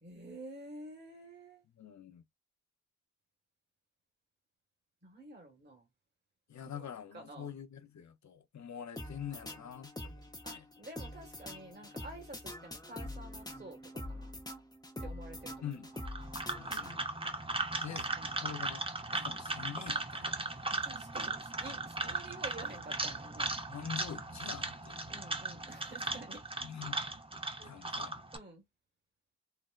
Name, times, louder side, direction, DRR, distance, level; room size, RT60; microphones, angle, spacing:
voice 1, 0.0-1.6 5.0-5.9 6.7-6.9 7.1-7.5 10.4-14.3 15.0-15.5 17.9-18.6 19.1-19.3 20.8-23.5 25.1-26.4 27.6-27.7 28.3-28.6, right 2 dB, 35° right, 1.4 m, -50 dB
voice 2, 1.7-2.2 6.5-10.6 15.6-15.9 16.6-17.0 17.8-18.1 18.4-18.9 19.1-20.7 22.0-22.1 23.7-25.2 26.6-27.0 27.6-28.2, left 8 dB, 70° left, 0.7 m, -45 dB
sound 1, 9.0-17.3, left 1 dB, 15° left, 0.7 m, -45 dB
sound 2, 16.0-28.4, right 2 dB, 20° right, 0.7 m, -37 dB
4.0 x 2.1 x 2.3 m
wide cardioid pair, 65°, 29 cm